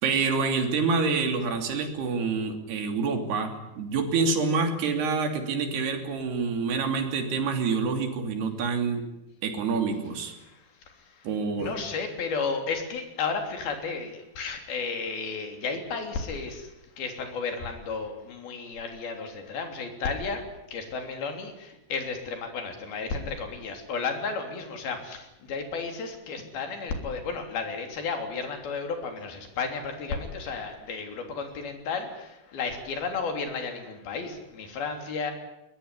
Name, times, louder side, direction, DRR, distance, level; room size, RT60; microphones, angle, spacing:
voice 1, 0.0-9.0 9.4-10.3 11.2-11.8, right 4 dB, 75° right, 5 dB, 5.0 m, -27 dB
voice 2, 10.4-11.3 11.6-20.4 20.7-35.3, left 4 dB, 65° left, 4 dB, 5.1 m, -33 dB
21.5 x 21.0 x 9.8 m, 0.93 s
omnidirectional pair, 4.7 m